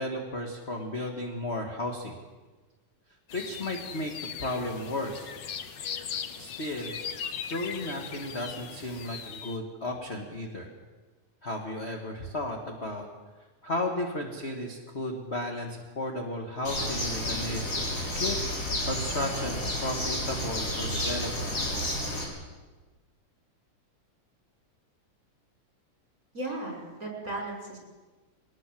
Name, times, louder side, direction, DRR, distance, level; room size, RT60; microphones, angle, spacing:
voice 1, 0.0-2.1 3.3-4.1 4.4-5.3 6.4-6.9 7.5-10.7 11.4-13.1 13.6-17.8 18.1-18.4 18.9-21.7, left 1 dB, 25° left, 2 dB, 1.7 m, -34 dB
sound 1, 3.3-9.6, left 7 dB, 70° left, 1.0 m, -39 dB
Bird, 16.6-22.2, left 1 dB, 50° left, 5.6 m, -31 dB
voice 2, 26.3-27.8, right 2 dB, 25° right, 1 dB, 6.1 m, -36 dB
22.5 x 19.5 x 7.7 m, 1.3 s
omnidirectional pair, 3.5 m